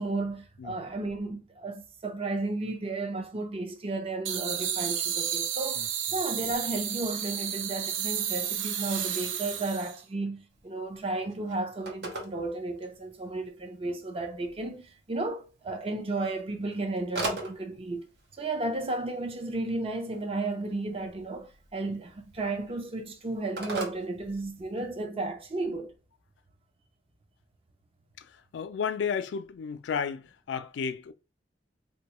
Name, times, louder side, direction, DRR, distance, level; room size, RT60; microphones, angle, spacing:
voice 1, 0.0-18.1 18.4-25.9, right 2 dB, 30° right, 0.5 m, -33 dB
sound 1, 4.3-10.0, right 9 dB, 85° right, 0.4 m, -32 dB
Telephone, 10.5-25.0, right 2 dB, 65° right, 0.8 m, -43 dB
voice 2, 28.5-31.1, left 6 dB, 70° left, 0.3 m, -32 dB
3.6 x 2.2 x 2.9 m
head